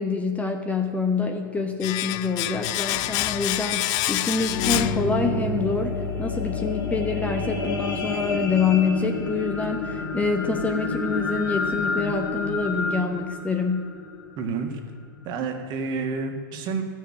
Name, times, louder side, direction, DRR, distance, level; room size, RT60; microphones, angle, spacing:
voice 1, 0.0-13.9, left 4 dB, 10° left, 4 dB, 0.9 m, -26 dB
Domestic sounds home sounds, 1.8-5.6 5.9-6.0, left 15 dB, 35° left, 0.4 m, -28 dB
sound 1, 4.1-14.6 15.2-15.3, left 3 dB, 70° left, 1.8 m, -29 dB
voice 2, 14.4-14.8 15.2-16.8, right 4 dB, 40° right, 5 dB, 1.7 m, -29 dB
12.5 x 6.5 x 8.5 m, 2.1 s
hypercardioid pair, 110°, 12 cm